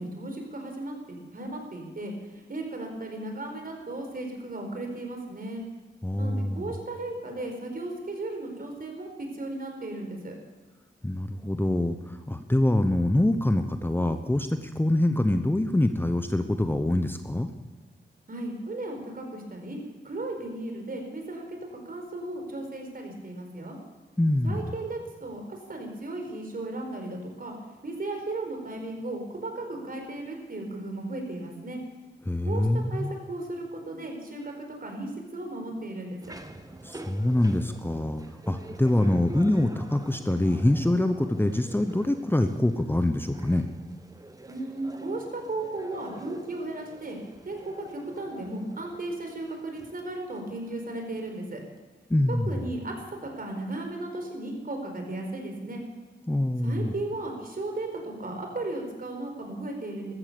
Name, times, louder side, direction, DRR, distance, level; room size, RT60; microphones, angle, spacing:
voice 1, 0.0-5.6 6.2-10.4 18.3-19.8 20.0-21.6 21.8-23.8 24.4-27.5 27.8-31.8 32.4-36.4 44.5-47.2 47.4-51.6 52.3-52.9 53.2-55.8 56.6-60.1, right 2 dB, 50° right, 3 dB, 4.6 m, -35 dB
voice 2, 6.0-6.7 11.0-17.5 24.2-24.7 32.3-33.1 36.8-43.7 52.1-52.6 56.3-56.9, left 1 dB, 10° left, 8 dB, 1.0 m, -25 dB
sound 1, 36.2-51.8, right 2 dB, 20° right, 1.4 m, -48 dB
14.0 x 14.0 x 7.0 m, 1.3 s
cardioid pair, 60°, 20 cm